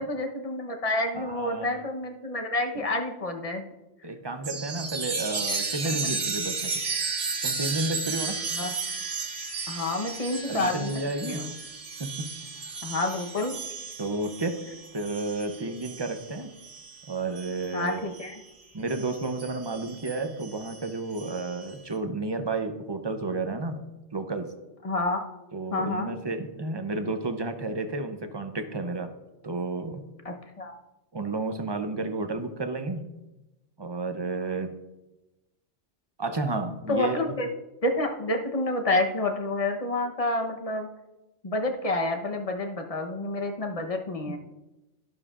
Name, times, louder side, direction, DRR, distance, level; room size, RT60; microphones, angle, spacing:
voice 1, 0.0-3.6 8.5-8.7 9.7-10.9 11.2-11.5 12.8-13.5 17.7-18.4 24.8-25.2 25.7-26.1 30.2-30.7 36.9-37.5 37.8-40.9 41.4-44.4, left 2 dB, 35° left, 4 dB, 1.0 m, -29 dB
voice 2, 1.1-1.8 2.7-2.9 4.0-6.7 7.4-8.4 10.5-11.5 12.0-12.4 14.0-14.6 14.9-16.6 17.1-18.1 18.7-23.9 24.1-24.5 25.5-29.1 29.4-30.1 31.1-33.1 33.8-34.7 36.2-37.2 44.3-44.4, right 2 dB, 30° right, 7 dB, 0.5 m, -31 dB
Chime, 4.4-18.4 18.9-21.7, right 4 dB, 90° right, 1.4 m, -34 dB
12.0 x 11.0 x 2.5 m, 1.0 s
omnidirectional pair, 1.2 m